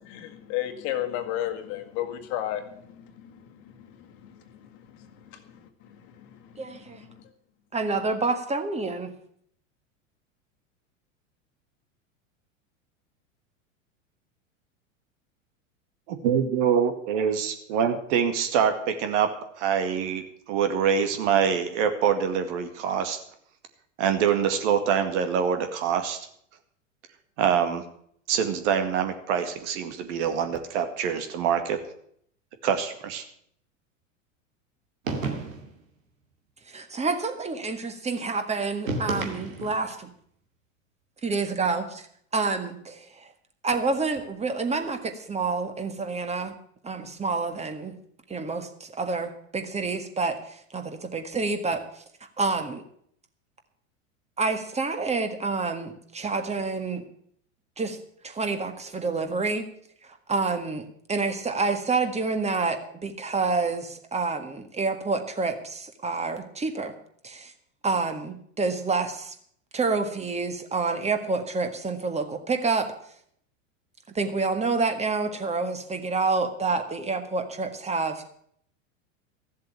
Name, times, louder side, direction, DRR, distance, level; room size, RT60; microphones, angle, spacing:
voice 1, 0.2-5.7 6.0-7.2, left 12 dB, 55° left, 7 dB, 1.8 m, -35 dB
voice 2, 6.6-7.0 7.7-9.1 36.7-40.1 41.2-42.0 42.3-43.1 43.6-46.6 46.8-47.9 48.3-51.8 52.4-52.8 54.4-57.0 57.8-58.0 58.2-59.7 60.3-66.9 67.2-67.5 67.8-69.4 69.7-72.9 74.2-78.3, right 4 dB, 15° right, 7 dB, 1.9 m, -28 dB
voice 3, 16.2-19.3 19.6-23.2 24.0-26.3 27.4-27.8 28.3-31.8 32.6-33.2, right 7 dB, 60° right, 7 dB, 2.2 m, -25 dB
Body falls, 35.1-35.8 38.9-39.9, right 3 dB, 85° right, 2.4 m, -31 dB
14.0 x 7.6 x 8.6 m, 0.66 s
hypercardioid pair, 95°, 39 cm